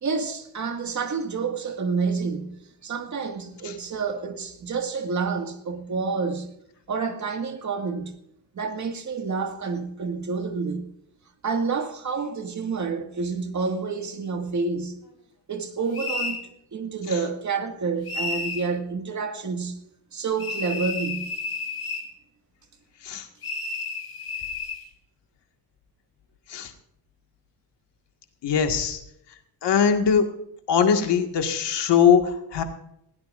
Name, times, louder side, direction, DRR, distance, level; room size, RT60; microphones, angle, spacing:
voice 1, 0.0-6.5 6.9-8.2 8.5-10.9 11.4-15.0 15.5-19.8 20.1-21.3, right 4 dB, 45° right, 2.0 m, -29 dB
sound 1, 15.9-16.4 18.1-18.6 20.4-22.1 23.4-24.8, left 3 dB, 65° left, 3.3 m, -31 dB
voice 2, 28.4-29.0 29.6-30.2 30.7-32.6, left 7 dB, 85° left, 1.9 m, -21 dB
20.5 x 17.5 x 2.6 m
wide cardioid pair, 170°, 41 cm